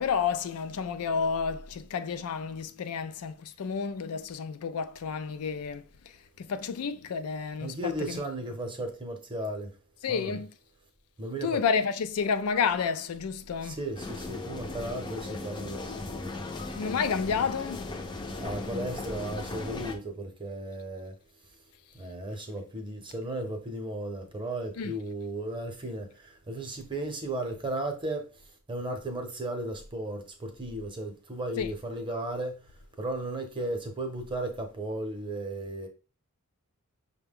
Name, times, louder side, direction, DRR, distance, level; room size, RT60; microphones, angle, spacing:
voice 1, 0.0-8.2 10.0-10.5 11.4-13.8 16.8-17.9 24.8-24.9 31.6-31.7, left 6 dB, 85° left, 0.4 m, -30 dB
voice 2, 7.6-9.7 10.1-10.4 11.2-11.6 13.6-16.1 18.4-21.1 21.9-28.3 28.7-32.6 33.0-35.9, right 1 dB, 20° right, 0.7 m, -35 dB
sound 1, 13.9-20.0, left 2 dB, 20° left, 0.5 m, -37 dB
5.7 x 2.2 x 3.5 m
head